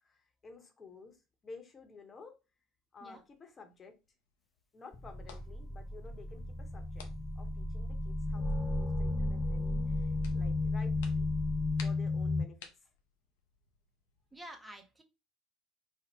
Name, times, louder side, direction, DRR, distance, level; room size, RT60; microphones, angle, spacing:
voice 1, 0.0-2.3 2.9-3.9 4.7-7.1 7.4-11.3 11.8-12.9, left 4 dB, 30° left, 5 dB, 0.9 m, -53 dB
sound 1, 3.1-14.4, left 6 dB, 70° left, 0.5 m, -58 dB
sound 2, 4.9-12.5, left 2 dB, 15° left, 0.3 m, -33 dB
voice 2, 14.3-15.0, right 1 dB, 10° right, 3 dB, 0.8 m, -49 dB
3.7 x 2.0 x 3.0 m, 0.28 s
figure-of-eight pair, 60°, 0 cm